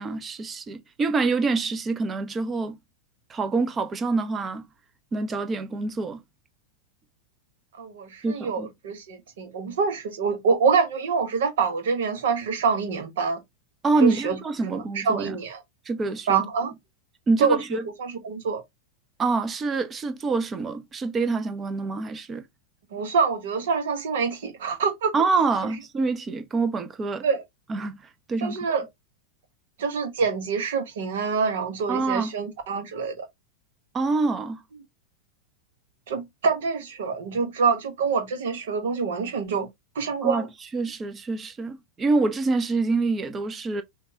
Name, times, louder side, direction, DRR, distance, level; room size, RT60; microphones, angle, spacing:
voice 1, 0.0-2.8 3.3-4.6 5.1-6.2 8.2-8.7 13.8-15.3 15.9-16.4 17.3-17.8 19.2-22.4 25.1-27.2 27.7-28.0 28.3-28.6 31.9-32.3 33.9-34.6 40.2-40.4 40.7-43.8, right 3 dB, 20° right, 0.7 m, -26 dB
voice 2, 7.7-13.4 14.0-14.4 14.6-15.6 16.3-16.7 17.4-17.6 17.8-18.6 22.9-25.1 27.2-27.4 28.4-28.9 29.8-33.3 36.1-39.7 39.9-40.5, right 5 dB, 60° right, 1.1 m, -26 dB
5.7 x 2.4 x 2.8 m
figure-of-eight pair, 90°, 0 cm